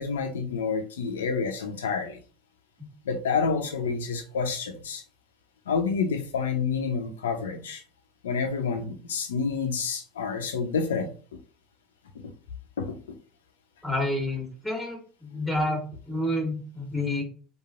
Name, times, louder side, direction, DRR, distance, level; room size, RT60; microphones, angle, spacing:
voice 1, 0.0-2.2 3.1-5.0 5.7-7.8 8.2-11.1 12.8-13.0, left 5 dB, 75° left, 0.5 m, -28 dB
voice 2, 13.8-15.8 16.1-17.2, left 1 dB, ahead, 1.3 m, -29 dB
3.0 x 2.5 x 2.4 m
figure-of-eight pair, 70°, 0 cm